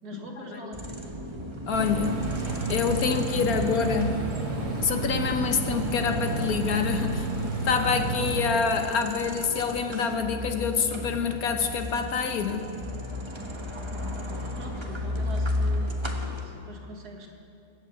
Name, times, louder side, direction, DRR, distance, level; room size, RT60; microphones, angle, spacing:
voice 1, 0.0-1.1 14.3-16.0 16.4-17.3, equal, 75° right, 0 dB, 2.4 m, -42 dB
sound 1, 0.7-16.5, left 1 dB, 20° right, 1.2 m, -35 dB
voice 2, 1.7-2.2 2.7-4.3 4.8-12.7, left 6 dB, 70° left, 6 dB, 1.5 m, -26 dB
sound 2, 1.7-8.5, right 3 dB, 50° right, 2.2 m, -30 dB
20.5 x 8.4 x 8.3 m, 2.7 s
omnidirectional pair, 1.7 m